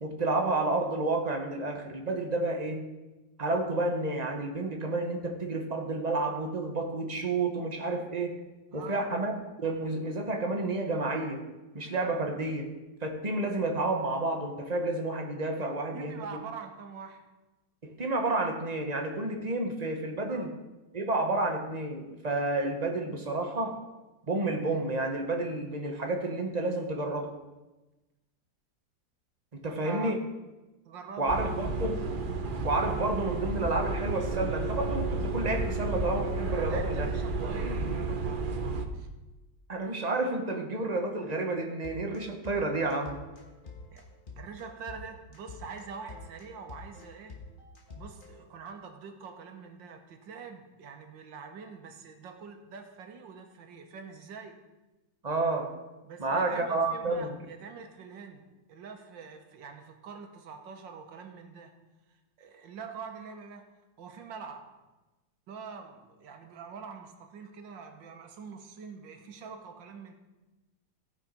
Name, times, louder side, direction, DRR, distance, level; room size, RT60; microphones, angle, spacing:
voice 1, 0.0-2.8 3.4-8.4 8.7-9.3 9.6-11.5 11.7-12.7 13.0-16.3 17.8-20.5 20.9-23.8 24.3-27.3 29.5-30.2 31.2-32.1 32.6-37.1 37.4-37.5 39.7-43.2 55.2-55.8 56.2-57.3, right 2 dB, 30° right, 4 dB, 0.9 m, -30 dB
voice 2, 8.7-9.1 15.6-17.3 20.3-20.5 29.6-30.1 30.9-31.5 36.5-39.1 43.9-44.1 44.4-47.4 47.9-54.6 56.0-61.7 62.1-63.7 64.0-64.7 65.5-70.1, right 5 dB, 80° right, 5 dB, 1.8 m, -45 dB
sound 1, 31.3-38.9, right 3 dB, 50° right, 0.6 m, -32 dB
sound 2, 41.7-48.5, left 3 dB, 30° left, 1.5 m, -47 dB
15.0 x 5.9 x 5.2 m, 1.1 s
omnidirectional pair, 2.0 m